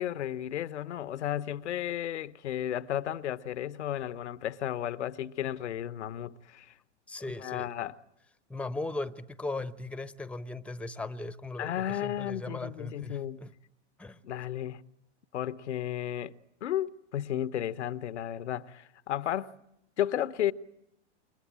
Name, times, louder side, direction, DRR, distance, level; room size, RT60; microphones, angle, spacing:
voice 1, 0.0-6.7 7.4-8.0 11.6-13.4 14.2-14.8 15.3-16.3 16.6-19.5 20.0-20.5, left 11 dB, 80° left, 1.0 m, -33 dB
voice 2, 7.1-7.7 8.5-13.5 14.0-14.2, left 2 dB, 5° left, 1.0 m, -38 dB
29.0 x 23.5 x 8.8 m
hypercardioid pair, 105°, 34 cm